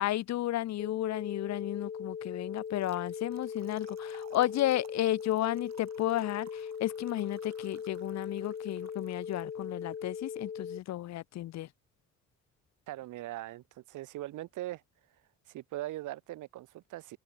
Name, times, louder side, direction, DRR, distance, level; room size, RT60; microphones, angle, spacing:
voice 1, 0.0-11.7, left 14 dB, 65° left, 0.6 m, -33 dB
sound 1, 0.8-10.8, left 7 dB, 35° left, 0.9 m, -40 dB
Trickle dribble / Fill (with liquid), 2.6-10.0, right 10 dB, 60° right, 2.8 m, -60 dB
voice 2, 12.9-14.8 15.5-17.2, right 16 dB, 80° right, 1.0 m, -40 dB
cardioid pair, 90°, 30 cm